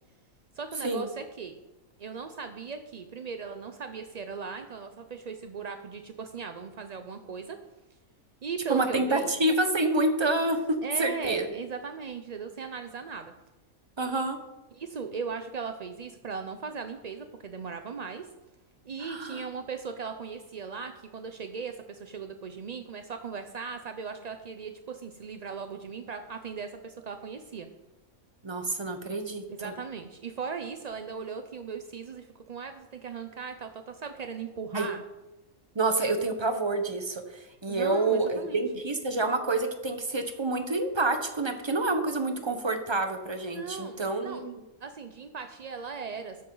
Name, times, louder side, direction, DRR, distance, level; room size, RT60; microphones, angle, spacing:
voice 1, 0.6-1.6 2.0-7.6 8.4-9.3 10.8-13.3 14.7-18.3 18.8-27.7 29.5-35.0 37.7-38.6 43.5-44.4 44.8-46.4, right 5 dB, 55° right, 7 dB, 0.4 m, -38 dB
voice 2, 8.7-11.5 14.0-14.4 19.0-19.4 28.4-29.7 34.7-34.9 35.7-44.5, right 2 dB, 20° right, 7 dB, 0.9 m, -28 dB
13.0 x 9.0 x 3.9 m, 1.0 s
omnidirectional pair, 1.5 m